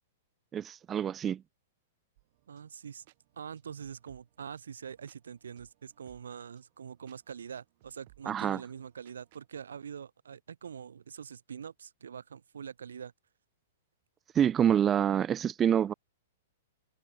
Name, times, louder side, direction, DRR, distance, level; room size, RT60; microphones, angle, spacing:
voice 1, 0.5-1.4 8.3-8.6 14.3-15.9, right 9 dB, 20° right, 0.5 m, -27 dB
sound 1, 2.2-9.5, right 20 dB, 50° right, 5.6 m, -66 dB
voice 2, 2.5-3.0 3.3-13.1, right 7 dB, 90° right, 0.7 m, -44 dB
hypercardioid pair, 135°, 0 cm